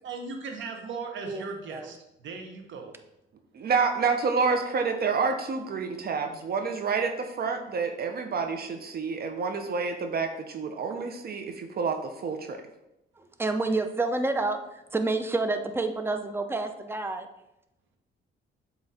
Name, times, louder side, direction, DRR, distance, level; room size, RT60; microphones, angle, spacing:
voice 1, 0.0-2.9, right 4 dB, 70° right, 3 dB, 1.2 m, -38 dB
voice 2, 3.5-12.6, right 5 dB, 50° right, 6 dB, 0.7 m, -28 dB
voice 3, 13.2-17.3, right 3 dB, 10° right, 7 dB, 0.6 m, -29 dB
7.6 x 3.0 x 4.2 m, 0.87 s
cardioid pair, 90°, 20 cm